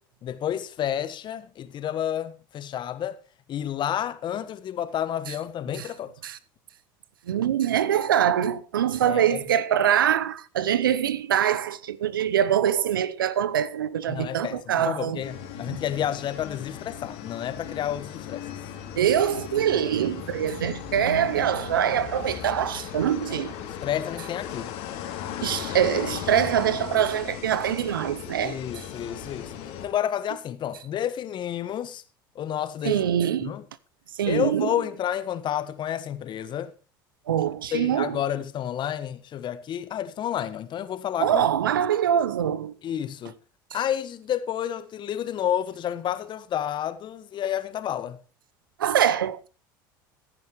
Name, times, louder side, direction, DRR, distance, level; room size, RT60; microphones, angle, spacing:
voice 1, 0.2-3.2 3.5-6.1 9.0-9.4 14.1-18.5 23.3-24.7 28.4-32.0 32.3-33.0 33.4-33.6 34.3-36.7 37.7-41.5 42.8-43.3 43.7-48.2, left 10 dB, 45° left, 1.4 m, -30 dB
voice 2, 7.3-15.2 15.7-15.8 19.0-23.5 25.4-28.6 32.8-33.5 34.2-34.7 37.3-38.2 41.2-42.7 48.8-49.5, right 9 dB, 85° right, 0.8 m, -24 dB
sound 1, 15.2-29.9, left 9 dB, 60° left, 2.8 m, -37 dB
15.5 x 10.5 x 3.1 m
hypercardioid pair, 70°, 11 cm